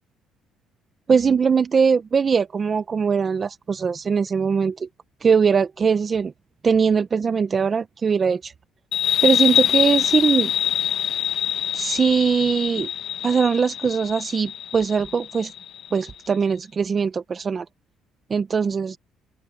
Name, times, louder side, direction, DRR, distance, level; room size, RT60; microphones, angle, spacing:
voice 1, 1.1-4.9 5.2-6.3 6.6-8.5 9.2-10.5 11.7-12.9 13.2-15.5 15.9-17.6 18.3-19.0, right 6 dB, 35° right, 0.9 m, -21 dB
sound 1, 8.9-16.1, left 10 dB, 65° left, 1.1 m, -24 dB
open air
cardioid pair, 110°, 0 cm